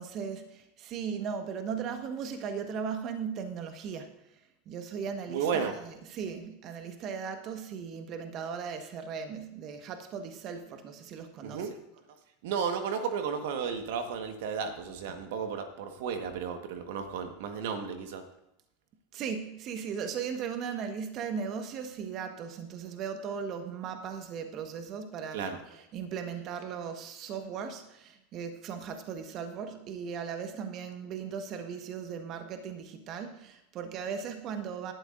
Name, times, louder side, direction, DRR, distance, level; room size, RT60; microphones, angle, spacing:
voice 1, 0.0-4.1 4.7-11.6 19.1-25.4 25.7-34.9, right 6 dB, 45° right, 6 dB, 1.4 m, -37 dB
voice 2, 5.3-5.7 11.4-11.8 12.4-18.2 25.3-25.6, right 6 dB, 65° right, 6 dB, 1.4 m, -33 dB
17.5 x 12.0 x 2.6 m, 0.86 s
hypercardioid pair, 85°, 0 cm